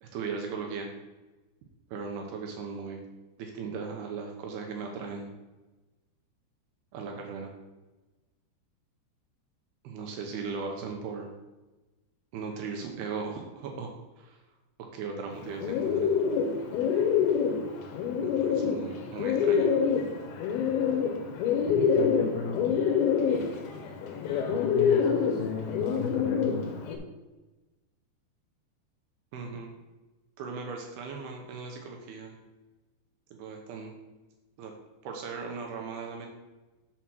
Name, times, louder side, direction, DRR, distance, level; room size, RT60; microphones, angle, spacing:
voice 1, 0.0-0.9 1.9-3.0 3.4-5.3 6.9-7.5 9.8-11.3 12.3-13.9 14.2-14.4 14.9-16.2 18.2-19.7 29.3-29.7 30.4-32.4 33.3-33.9 34.6-34.7 35.0-36.3, right 5 dB, 75° right, 2 dB, 2.4 m, -37 dB
Bird, 15.3-27.0, left 6 dB, 75° left, 2.5 m, -26 dB
voice 2, 21.7-22.8 24.3-26.8, left 5 dB, 90° left, 2 dB, 2.1 m, -36 dB
7.2 x 4.3 x 6.0 m, 1.1 s
omnidirectional pair, 5.2 m